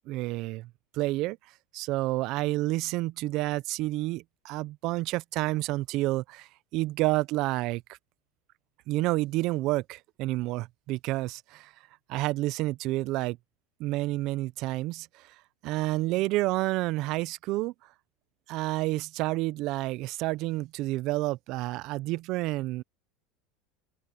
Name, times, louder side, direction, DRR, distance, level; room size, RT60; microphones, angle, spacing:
voice 1, 0.0-1.4 1.7-8.0 8.9-11.7 12.1-13.4 13.8-15.3 15.6-17.7 18.5-22.8, right 19 dB, 55° right, 0.5 m, -29 dB
open air
supercardioid pair, 140°, 0 cm